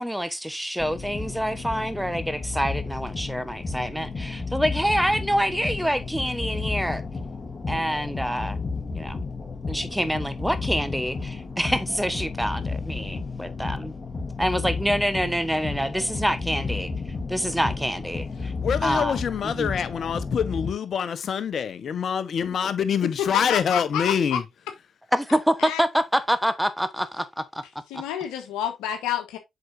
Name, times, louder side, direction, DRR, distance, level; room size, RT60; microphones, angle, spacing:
voice 1, 0.0-7.0 7.7-8.7 8.9-9.2 9.7-13.9 14.4-16.9 17.3-18.5 18.8-19.2 19.4-19.7 25.1-27.6 27.9-28.0, equal, 5° right, 1.2 m, -26 dB
sound 1, 0.8-20.7, left 4 dB, 35° left, 1.8 m, -32 dB
voice 2, 18.6-24.4, left 7 dB, 60° left, 1.2 m, -25 dB
voice 3, 23.2-24.4 25.6-25.8 27.9-29.4, left 10 dB, 80° left, 1.3 m, -29 dB
7.8 x 6.2 x 2.8 m
hypercardioid pair, 50°, 0 cm